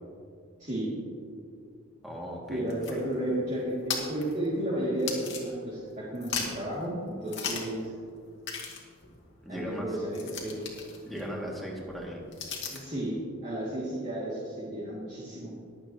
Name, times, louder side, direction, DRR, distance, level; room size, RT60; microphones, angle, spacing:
voice 1, 0.6-0.9 2.5-7.9 9.5-10.7 12.7-15.5, right 1 dB, 40° right, -8 dB, 2.4 m, -33 dB
voice 2, 2.0-2.6 2.9-3.0 9.4-9.9 11.1-12.2, equal, ahead, -3 dB, 2.2 m, -37 dB
sound 1, 2.5-5.9 6.1-6.7 7.3-7.8 8.1-8.2 8.4-13.0, left 5 dB, 65° left, 2.1 m, -38 dB
22.0 x 8.4 x 2.9 m, 2.3 s
head